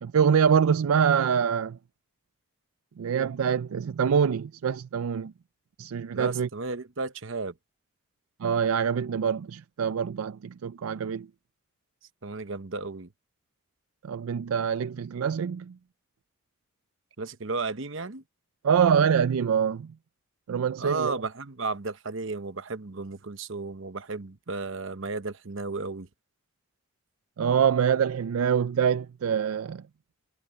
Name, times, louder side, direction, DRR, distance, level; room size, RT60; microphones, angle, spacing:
voice 1, 0.0-1.8 3.0-5.3 5.8-6.5 8.4-11.3 14.0-15.7 18.6-19.9 20.5-21.1 27.4-29.8, right 7 dB, 85° right, 0.4 m, -25 dB
voice 2, 6.1-7.5 12.2-13.1 17.2-18.2 20.8-26.1, right 3 dB, 65° right, 1.0 m, -33 dB
head